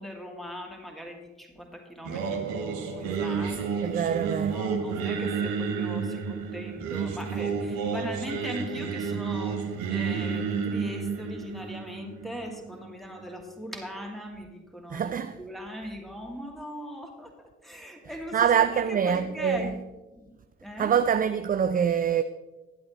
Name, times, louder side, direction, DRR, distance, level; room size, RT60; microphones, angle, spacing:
voice 1, 0.0-3.9 4.5-19.8 20.1-20.3 20.6-20.9, equal, ahead, 2.4 m, -40 dB
Singing, 2.0-13.1, right 5 dB, 65° right, 1.4 m, -31 dB
voice 2, 3.8-4.6 14.9-15.4 18.3-19.7 20.8-22.2, right 8 dB, 25° right, 0.4 m, -25 dB
13.5 x 11.0 x 3.1 m
figure-of-eight pair, 40°, 38 cm